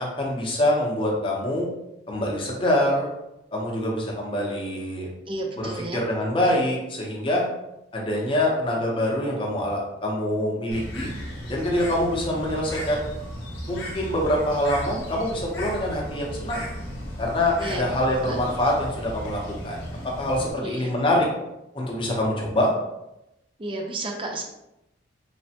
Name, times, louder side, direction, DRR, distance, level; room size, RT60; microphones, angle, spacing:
voice 1, 0.0-1.7 2.1-3.1 3.5-5.1 5.6-7.4 7.9-11.1 11.5-13.1 13.7-16.7 17.2-19.8 20.0-21.3 21.7-22.7, left 1 dB, 25° left, -2 dB, 0.6 m, -25 dB
voice 2, 5.3-6.0 17.6-18.4 20.6-20.9 23.6-24.4, right 2 dB, 25° right, 2 dB, 0.4 m, -32 dB
Bird, 10.7-20.5, equal, 70° left, 0.7 m, -35 dB
3.2 x 2.0 x 2.8 m, 0.89 s
head